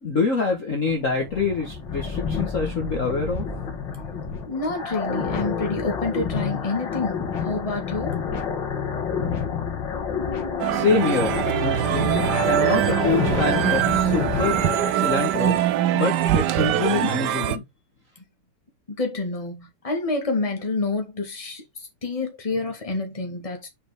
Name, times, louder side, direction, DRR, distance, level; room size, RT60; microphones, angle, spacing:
voice 1, 0.0-3.5 10.7-12.1 12.5-14.6 14.9-15.6 15.9-17.6, left 4 dB, 40° left, 1.6 m, -25 dB
sound 1, 0.7-14.9, left 6 dB, 55° left, 2.5 m, -29 dB
voice 2, 4.5-8.2 19.0-21.6 22.0-23.7, left 3 dB, 15° left, 1.8 m, -28 dB
sound 2, 10.6-17.6, right 12 dB, 75° right, 1.0 m, -23 dB
7.1 x 5.1 x 3.5 m
omnidirectional pair, 2.4 m